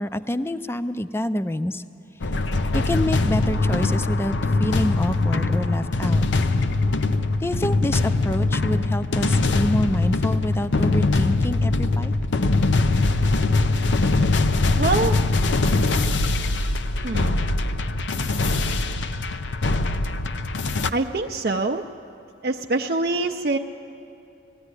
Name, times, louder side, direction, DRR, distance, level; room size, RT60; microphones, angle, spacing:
voice 1, 0.0-1.8 2.7-4.3 4.6-6.2 7.4-12.1, left 1 dB, 15° left, 12 dB, 0.4 m, -27 dB
sound 1, 2.2-20.9, left 2 dB, 85° left, 0.7 m, -22 dB
voice 2, 14.8-15.2 17.0-17.4 20.9-21.8 22.4-23.6, right 3 dB, 55° right, 2 dB, 0.5 m, -24 dB
20.0 x 14.5 x 9.8 m, 2.8 s
head